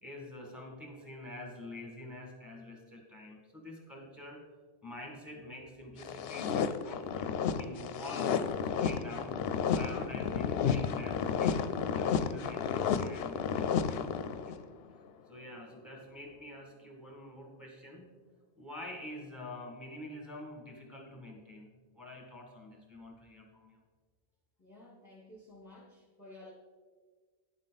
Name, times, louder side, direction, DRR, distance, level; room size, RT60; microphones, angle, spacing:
voice 1, 0.0-4.4 4.8-7.3 7.6-9.4 9.7-14.6 15.3-18.1 18.6-21.7 21.9-23.8, left 1 dB, ahead, -1 dB, 1.9 m, -47 dB
sound 1, 6.0-14.6, left 7 dB, 75° left, 0.8 m, -32 dB
voice 2, 24.6-26.5, left 1 dB, 15° left, -4 dB, 1.3 m, -53 dB
10.0 x 7.3 x 4.1 m, 1.5 s
omnidirectional pair, 1.1 m